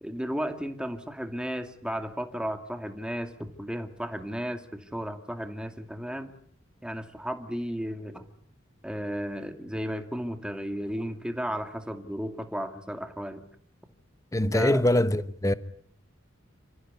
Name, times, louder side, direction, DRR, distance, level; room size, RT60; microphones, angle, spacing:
voice 1, 0.0-6.3 6.8-8.2 8.8-13.4 14.5-14.8, equal, 5° right, 2.3 m, -34 dB
voice 2, 14.3-15.5, left 1 dB, 15° left, 1.1 m, -23 dB
29.0 x 15.0 x 9.6 m
head